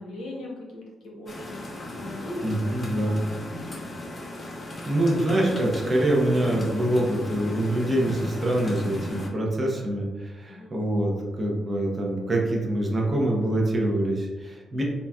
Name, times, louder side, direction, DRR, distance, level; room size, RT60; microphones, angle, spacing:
voice 1, 0.0-3.1 3.5-3.8 10.5-10.8, left 1 dB, 85° left, -2 dB, 0.9 m, -39 dB
sound 1, 1.3-9.3, left 1 dB, 25° left, 0.5 m, -36 dB
voice 2, 2.4-3.1 4.6-14.8, right 1 dB, 20° right, -2 dB, 0.6 m, -25 dB
3.9 x 2.3 x 2.2 m, 1.3 s
cardioid pair, 160°, 0 cm